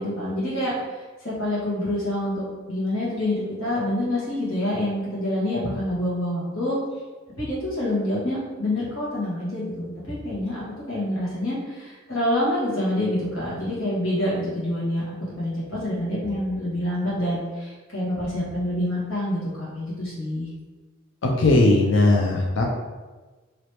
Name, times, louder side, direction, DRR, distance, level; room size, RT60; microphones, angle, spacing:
voice 1, 0.0-6.8 7.4-15.0 15.4-20.5, left 1 dB, 90° left, -8 dB, 1.4 m, -27 dB
voice 2, 21.2-22.7, left 2 dB, 65° left, 0 dB, 0.5 m, -18 dB
2.9 x 2.9 x 3.2 m, 1.3 s
head